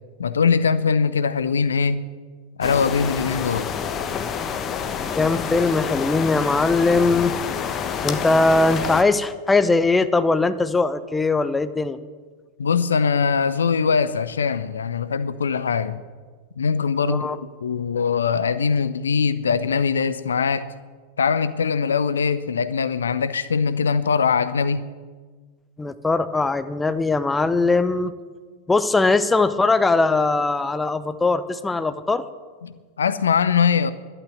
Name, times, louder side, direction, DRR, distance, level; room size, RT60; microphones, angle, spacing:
voice 1, 0.2-2.0 2.6-3.7 12.6-16.0 16.6-20.7 21.2-24.8 32.6-32.7 33.0-33.9, left 6 dB, 70° left, 14 dB, 0.6 m, -21 dB
sound 1, 2.6-9.0, left 7 dB, 25° left, 1.2 m, -28 dB
voice 2, 5.2-7.4 8.0-12.0 17.1-17.4 25.8-28.1 28.7-32.2, left 3 dB, 10° left, 11 dB, 0.7 m, -20 dB
11.5 x 9.0 x 9.2 m, 1.5 s
figure-of-eight pair, 90°, 0 cm